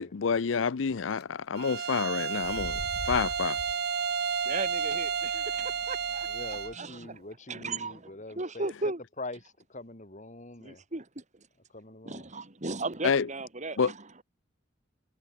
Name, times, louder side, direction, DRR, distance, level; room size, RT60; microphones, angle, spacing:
voice 1, 0.0-2.8 3.1-3.6 13.0-13.3 13.8-13.9, left 5 dB, 85° left, 0.6 m, -28 dB
sound 1, 0.9-1.2 2.3-6.7, left 1 dB, 55° left, 3.4 m, -45 dB
Bowed string instrument, 1.6-6.8, right 6 dB, 55° right, 1.6 m, -31 dB
voice 2, 4.4-7.2 7.5-9.0 10.6-11.2 12.0-14.0, right 3 dB, 40° right, 2.7 m, -36 dB
voice 3, 6.3-8.7 9.2-9.4 9.7-10.8 11.7-12.3, left 2 dB, 40° left, 6.0 m, -43 dB
head